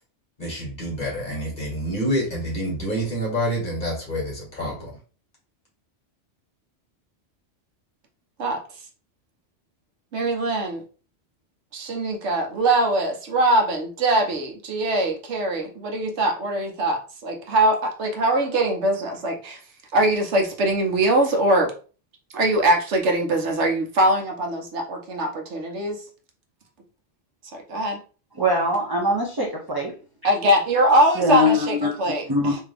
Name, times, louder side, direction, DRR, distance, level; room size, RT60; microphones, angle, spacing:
voice 1, 0.4-4.9, equal, 40° left, -3 dB, 1.9 m, -27 dB
voice 2, 10.1-10.8 11.7-19.6 19.9-21.7 22.3-25.9 27.7-28.0 30.2-32.6, right 1 dB, 75° right, 2 dB, 1.1 m, -22 dB
voice 3, 28.4-29.9 31.2-32.6, left 1 dB, 25° right, -3 dB, 0.6 m, -22 dB
3.5 x 2.8 x 3.3 m, 0.37 s
omnidirectional pair, 1.2 m